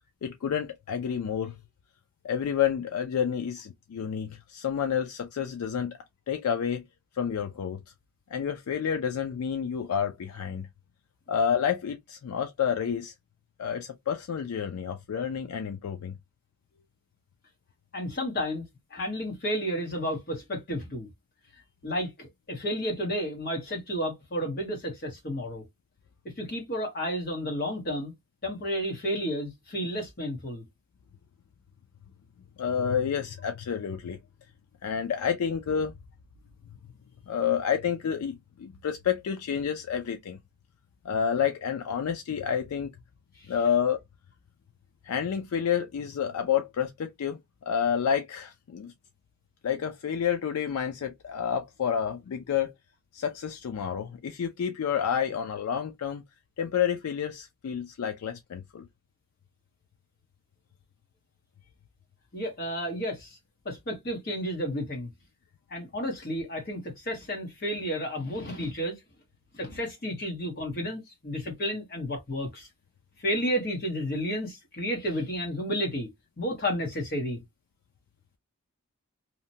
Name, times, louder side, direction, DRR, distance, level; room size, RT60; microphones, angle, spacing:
voice 1, 0.2-1.6 2.2-6.0 6.3-6.8 7.1-7.8 8.3-10.7 11.3-13.1 13.6-16.1 32.6-34.2 34.8-35.9 37.3-40.4 41.0-42.9 43.5-44.0 45.0-47.4 47.7-48.9 49.6-52.7 53.1-56.2 56.6-58.9, left 8 dB, 85° left, 0.4 m, -29 dB
voice 2, 17.9-18.7 18.9-21.1 21.5-25.6 26.2-28.1 28.4-30.6 62.3-63.3 63.6-65.1 65.7-69.0 69.5-72.7 73.2-76.1 76.4-77.4, equal, 45° left, 1.0 m, -32 dB
2.8 x 2.1 x 2.7 m
head